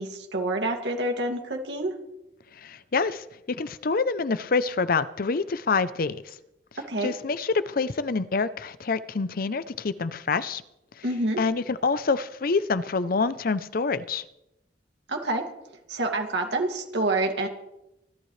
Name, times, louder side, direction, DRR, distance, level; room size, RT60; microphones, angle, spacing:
voice 1, 0.0-1.9 6.9-7.1 11.0-11.4 15.1-15.4 15.9-17.5, right 2 dB, 80° right, 2.4 m, -27 dB
voice 2, 2.6-6.3 7.0-10.6 11.4-14.2, left 4 dB, 55° left, 0.6 m, -26 dB
27.5 x 12.0 x 3.3 m
head